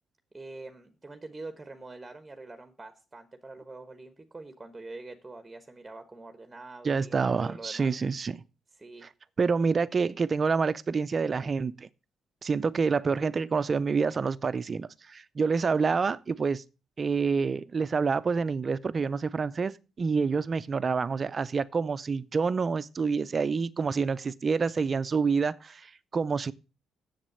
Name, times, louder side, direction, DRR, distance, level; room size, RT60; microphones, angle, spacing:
voice 1, 0.3-7.9 8.8-9.0, right 3 dB, 15° right, 1.2 m, -45 dB
voice 2, 6.8-8.4 9.4-11.9 12.4-16.6 17.0-26.5, right 5 dB, 40° right, 0.6 m, -27 dB
7.4 x 7.3 x 6.7 m
cardioid pair, 90°, 0 cm